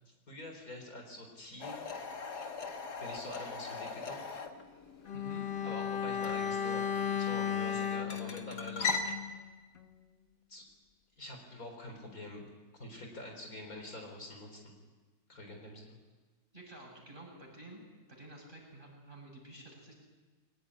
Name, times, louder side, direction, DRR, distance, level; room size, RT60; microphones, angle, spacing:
voice 1, 0.3-1.8 2.9-4.3 5.6-8.9 10.5-10.7 11.2-12.4 12.8-14.7 15.3-16.0, left 1 dB, 60° left, 2 dB, 4.5 m, -46 dB
sound 1, 1.6-9.1, left 4 dB, 75° left, 2.4 m, -40 dB
Bowed string instrument, 5.0-9.5 9.8-9.9, left 8 dB, 40° left, 1.1 m, -35 dB
voice 2, 5.1-5.4 16.5-17.8 18.1-19.9, right 1 dB, 30° right, -2 dB, 8.1 m, -50 dB
23.5 x 19.0 x 10.0 m, 1.3 s
omnidirectional pair, 1.7 m